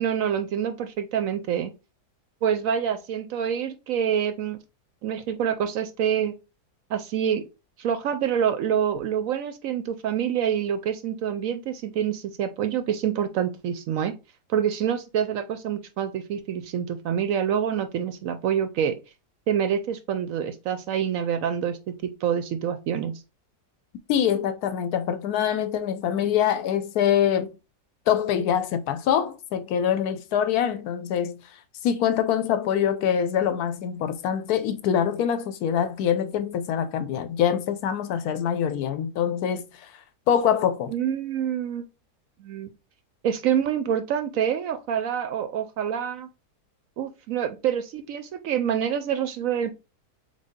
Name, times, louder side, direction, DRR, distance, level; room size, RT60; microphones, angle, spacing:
voice 1, 0.0-1.7 2.4-4.6 5.0-6.3 6.9-7.4 7.8-14.1 14.5-19.0 19.5-23.2 40.9-41.8 42.4-42.7 43.2-46.3 47.0-49.7, right 8 dB, 70° right, 0.8 m, -26 dB
voice 2, 24.1-27.5 28.1-31.4 31.8-39.6 40.3-40.9, left 9 dB, 70° left, 1.1 m, -24 dB
3.9 x 3.7 x 3.6 m
omnidirectional pair, 1.8 m